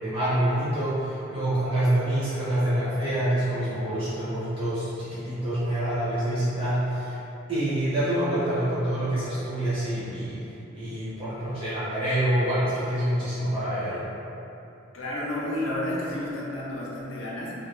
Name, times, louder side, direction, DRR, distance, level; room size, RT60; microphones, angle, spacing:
voice 1, 0.0-7.2 7.5-10.4 10.7-14.0, right 1 dB, 25° right, -12 dB, 0.5 m, -26 dB
voice 2, 14.9-17.5, left 1 dB, 80° left, -5 dB, 0.5 m, -31 dB
2.2 x 2.1 x 3.0 m, 2.9 s
head